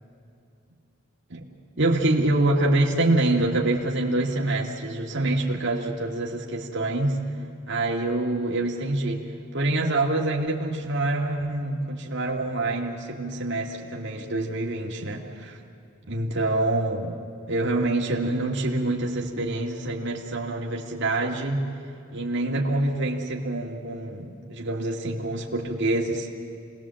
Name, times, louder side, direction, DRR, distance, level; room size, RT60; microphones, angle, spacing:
voice 1, 1.8-7.2 7.7-9.2 9.5-15.6 16.1-17.2 17.5-21.6 22.1-26.3, right 2 dB, 60° right, -1 dB, 2.1 m, -26 dB
28.0 x 20.0 x 7.6 m, 2.5 s
head